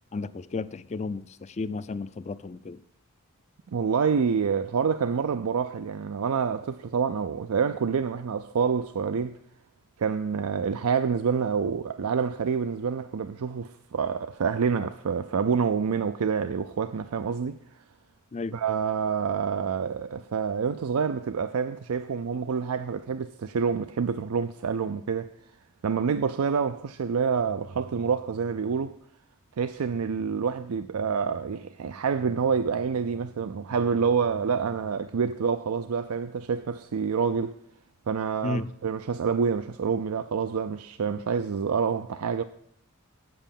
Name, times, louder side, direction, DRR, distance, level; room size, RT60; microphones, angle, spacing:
voice 1, 0.1-2.8 18.3-18.6 38.4-38.7, left 3 dB, 30° left, 0.4 m, -33 dB
voice 2, 3.7-9.4 10.0-17.6 18.5-25.3 25.8-29.0 29.6-37.6 38.1-42.4, right 6 dB, 85° right, 0.5 m, -27 dB
9.0 x 7.8 x 7.0 m
head